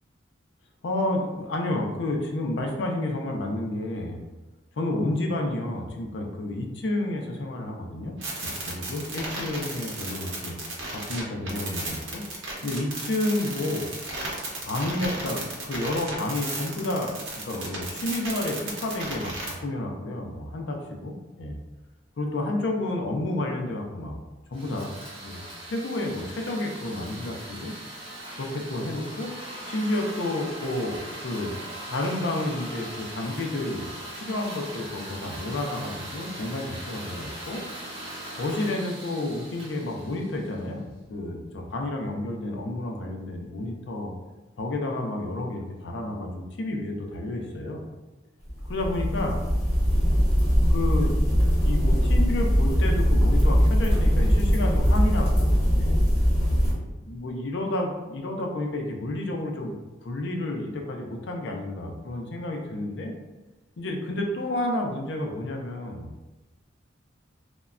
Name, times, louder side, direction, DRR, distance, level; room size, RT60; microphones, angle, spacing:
voice 1, 0.8-4.2 4.8-10.6 10.9-12.2 12.6-13.9 14.6-17.1 17.4-21.6 22.2-24.2 24.5-24.9 25.2-27.7 28.3-29.3 29.7-31.5 31.9-33.9 34.2-37.6 38.3-40.8 41.1-44.1 44.6-47.8 48.6-49.4 50.7-51.1 51.6-56.0 57.0-59.7 60.0-63.1 63.8-66.1, left 1 dB, 65° left, 2 dB, 0.4 m, -30 dB
sound 1, 8.2-19.5, right 2 dB, 80° right, 0.7 m, -34 dB
sound 2, 24.5-40.7, right 1 dB, 25° right, 0.7 m, -40 dB
sound 3, 48.5-56.7, equal, 35° left, 1.2 m, -21 dB
3.1 x 2.1 x 2.4 m, 1.1 s
head